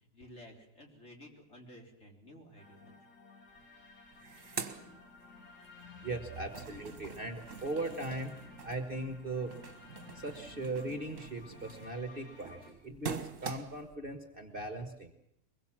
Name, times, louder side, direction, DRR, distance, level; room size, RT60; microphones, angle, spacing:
voice 1, 0.0-2.9, equal, 40° left, 1 dB, 4.2 m, -53 dB
sound 1, 2.6-12.7, left 4 dB, 65° left, 3.1 m, -55 dB
sound 2, 3.5-3.6 3.9-5.7 6.1-14.0, right 6 dB, 50° right, 1.8 m, -45 dB
voice 2, 6.0-9.5 10.1-15.1, right 2 dB, 35° right, 6 dB, 1.6 m, -39 dB
23.0 x 21.5 x 7.4 m, 0.75 s
omnidirectional pair, 1.8 m